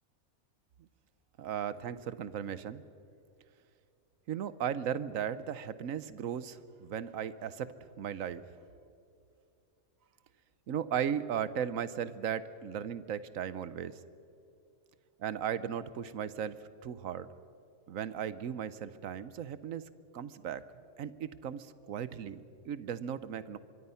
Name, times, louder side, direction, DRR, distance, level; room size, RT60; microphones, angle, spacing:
voice 1, 1.4-2.8 4.3-8.4 10.7-14.0 15.2-17.3 17.9-19.8 20.1-20.6 21.0-23.6, right 8 dB, 75° right, 15 dB, 1.2 m, -36 dB
24.5 x 24.0 x 5.7 m, 2.6 s
omnidirectional pair, 1.4 m